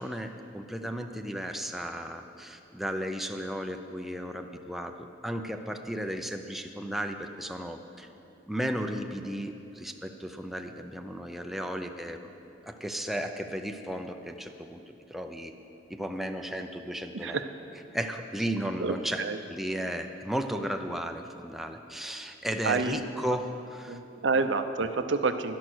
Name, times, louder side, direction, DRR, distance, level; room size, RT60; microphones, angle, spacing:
voice 1, 0.0-8.1 8.5-12.3 12.7-14.8 15.1-15.5 15.9-17.4 17.9-19.2 19.5-24.0, equal, ahead, 5 dB, 0.5 m, -34 dB
voice 2, 17.1-17.5 18.8-19.4 22.6-23.0 23.9-25.6, right 4 dB, 75° right, 9 dB, 0.6 m, -28 dB
11.5 x 11.0 x 6.2 m, 2.8 s
head